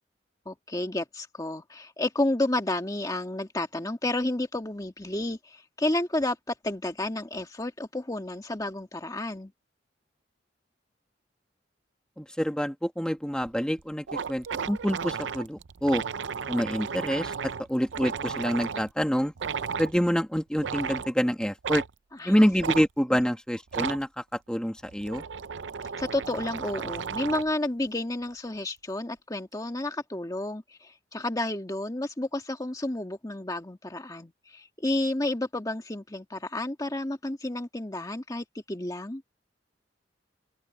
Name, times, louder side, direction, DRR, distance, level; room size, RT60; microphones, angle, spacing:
voice 1, 0.4-6.4 6.6-9.5 22.2-22.5 26.0-39.2, left 1 dB, 20° left, 1.7 m, -31 dB
voice 2, 12.2-16.0 16.5-19.3 19.8-21.8 22.2-25.2, equal, 5° left, 1.8 m, -27 dB
sound 1, 13.4-13.5 13.8-13.9 14.1-18.9 19.4-19.9 20.6-21.1 21.6-21.9 22.6-22.8 23.7-24.0 24.8-27.6, right 6 dB, 85° right, 0.6 m, -34 dB
open air
head